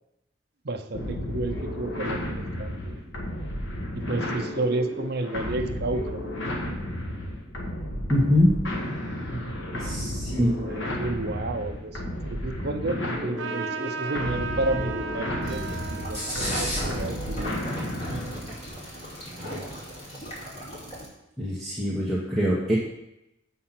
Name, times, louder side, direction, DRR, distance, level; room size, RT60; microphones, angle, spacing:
voice 1, 0.6-3.1 4.1-6.2 9.7-17.6, right 2 dB, 60° right, 4 dB, 0.8 m, -32 dB
sound 1, 0.9-18.6, left 1 dB, 75° left, 1.7 m, -33 dB
voice 2, 8.1-8.5 9.8-10.5 21.4-22.8, left 1 dB, ahead, -7 dB, 1.3 m, -23 dB
Trumpet, 13.4-18.4, right 5 dB, 80° right, 1.1 m, -36 dB
sound 2, 15.4-21.1, equal, 30° left, 3.0 m, -35 dB
7.6 x 5.6 x 5.9 m, 0.87 s
head